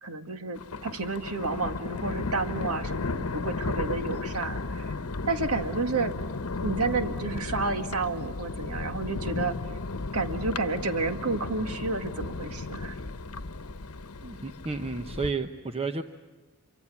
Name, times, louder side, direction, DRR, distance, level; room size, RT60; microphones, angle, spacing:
voice 1, 0.0-4.9 5.3-6.1 6.6-9.6 10.1-13.0, right 3 dB, 90° right, 7 dB, 2.0 m, -31 dB
Thunder, 0.5-15.3, left 3 dB, 85° left, 1.0 m, -34 dB
voice 2, 14.2-16.0, right 4 dB, 25° right, 7 dB, 0.9 m, -32 dB
26.0 x 24.5 x 8.4 m, 1.3 s
head